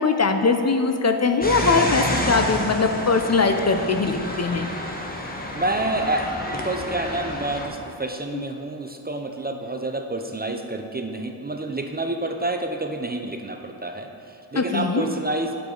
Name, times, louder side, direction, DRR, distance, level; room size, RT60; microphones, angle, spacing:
voice 1, 0.0-4.7 8.3-8.4 14.5-15.0, left 4 dB, 35° left, 6 dB, 0.6 m, -21 dB
sound 1, 1.4-7.7, left 1 dB, 20° left, 1.2 m, -29 dB
voice 2, 5.5-15.6, right 2 dB, 20° right, 5 dB, 0.5 m, -28 dB
9.0 x 7.1 x 3.9 m, 2.6 s
cardioid pair, 65°, 45 cm